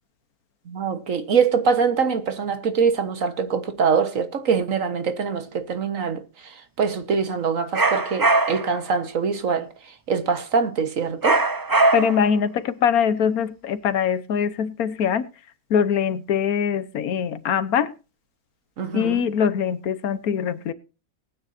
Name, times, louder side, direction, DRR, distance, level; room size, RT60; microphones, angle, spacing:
voice 1, 0.7-6.2 6.8-9.7 10.1-11.4 18.8-19.2, right 5 dB, 65° right, 1.7 m, -23 dB
sound 1, 7.7-8.8 11.2-12.3, right 2 dB, 25° right, 0.5 m, -20 dB
voice 2, 11.9-15.3 15.7-17.9 18.9-20.7, left 7 dB, 90° left, 1.4 m, -22 dB
20.0 x 9.3 x 2.7 m
omnidirectional pair, 1.5 m